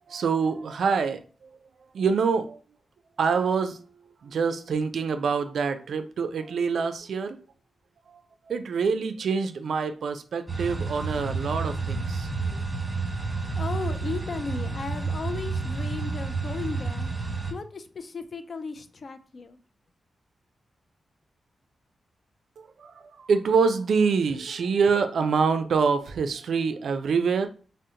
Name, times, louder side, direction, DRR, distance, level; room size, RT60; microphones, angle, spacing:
voice 1, 0.1-1.2 1.9-2.6 3.2-3.8 4.2-7.4 8.1-8.2 8.5-12.3 22.6-27.5, right 5 dB, 75° right, 9 dB, 0.3 m, -25 dB
sound 1, 10.5-17.5, right 4 dB, 15° right, 1.1 m, -30 dB
voice 2, 13.6-17.1 17.5-19.6, left 4 dB, 50° left, 9 dB, 0.3 m, -35 dB
3.7 x 2.0 x 2.7 m, 0.38 s
wide cardioid pair, 100°, 0 cm